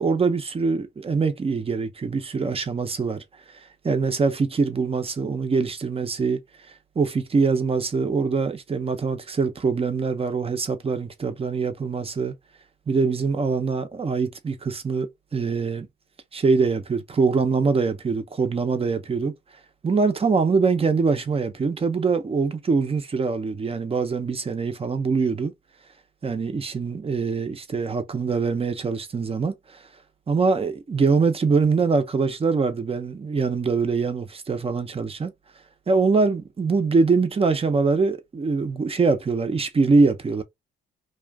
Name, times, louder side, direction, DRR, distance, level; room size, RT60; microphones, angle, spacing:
voice 1, 0.0-3.2 3.8-6.4 7.0-12.3 12.9-15.9 16.3-19.3 19.8-25.5 26.2-29.8 30.3-35.3 35.9-40.4, right 4 dB, 30° right, 0.8 m, -23 dB
2.5 x 2.4 x 3.4 m
cardioid pair, 90°, 20 cm